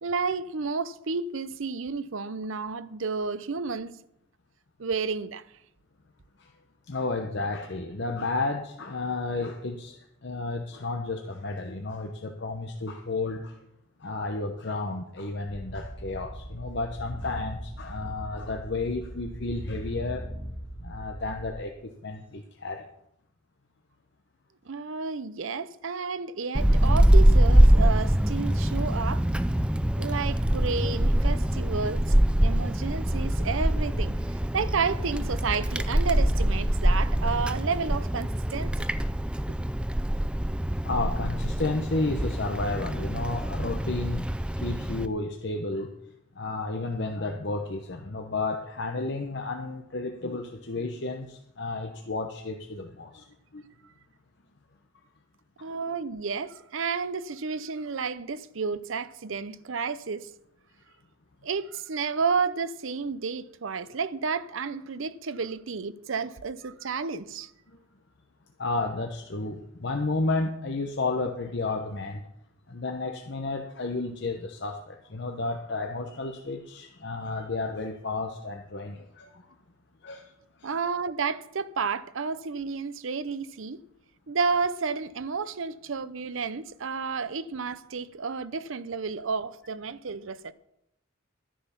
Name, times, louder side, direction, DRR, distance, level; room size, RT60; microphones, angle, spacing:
voice 1, 0.0-3.9 4.8-5.4 24.7-29.2 30.0-34.1 34.5-38.9 55.6-60.3 61.4-67.5 80.6-83.8 84.3-90.5, right 5 dB, 70° right, 0.6 m, -31 dB
voice 2, 6.9-13.6 14.0-20.2 20.8-22.8 30.1-30.2 40.8-44.2 44.5-45.9 46.4-53.2 53.5-53.6 68.6-72.2 72.7-79.4 80.0-80.3 80.6-80.7, left 3 dB, 55° left, 0.9 m, -32 dB
sound 1, 15.5-21.5, equal, 25° left, 2.8 m, -39 dB
Wind, 26.5-45.1, right 1 dB, 5° right, 0.4 m, -24 dB
12.0 x 10.0 x 5.8 m
head